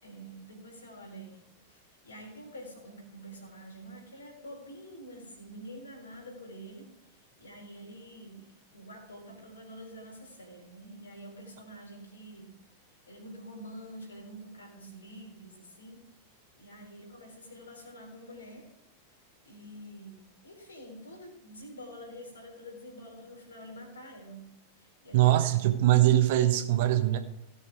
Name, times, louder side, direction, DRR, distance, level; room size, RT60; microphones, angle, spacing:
voice 1, 0.0-12.6 12.9-16.0 16.6-18.7 19.4-25.5, equal, 75° left, 1 dB, 3.6 m, -47 dB
voice 2, 25.1-27.2, right 14 dB, 50° right, 7 dB, 1.3 m, -22 dB
17.0 x 6.3 x 4.8 m, 0.85 s
figure-of-eight pair, 90°, 0 cm